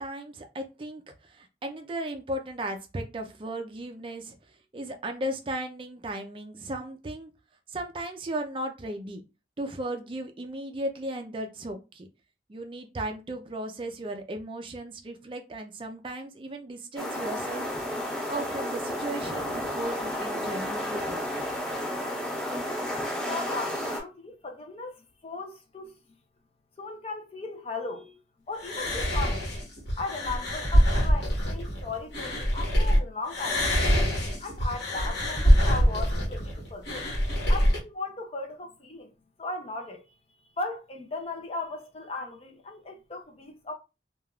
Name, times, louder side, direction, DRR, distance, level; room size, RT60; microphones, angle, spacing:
voice 1, 0.0-4.4 4.7-7.3 7.7-9.2 9.6-12.1 12.5-17.9 18.3-21.5, right 1 dB, 30° right, 0.4 m, -36 dB
sound 1, 17.0-24.0, equal, 5° left, 0.8 m, -32 dB
voice 2, 23.2-25.9 26.8-28.2 28.5-29.5 30.0-33.9 34.4-37.0 37.5-39.1 39.4-40.0 40.6-43.7, left 3 dB, 35° left, 0.5 m, -37 dB
Femmes whispers, 28.6-33.0 33.3-37.8, equal, 70° left, 1.1 m, -24 dB
3.3 x 2.3 x 2.3 m
head